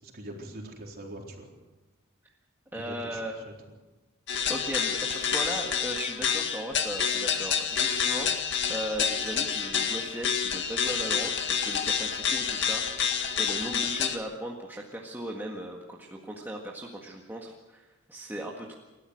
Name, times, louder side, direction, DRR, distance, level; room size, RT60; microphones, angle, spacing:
voice 1, 0.0-1.5 2.7-3.5, right 1 dB, 45° right, 0 dB, 4.1 m, -43 dB
voice 2, 2.7-3.4 4.5-8.3 8.7-18.8, right 1 dB, 10° right, -1 dB, 1.8 m, -37 dB
sound 1, 4.3-14.2, left 7 dB, 55° left, 1.9 m, -28 dB
30.0 x 13.5 x 6.5 m, 1.2 s
head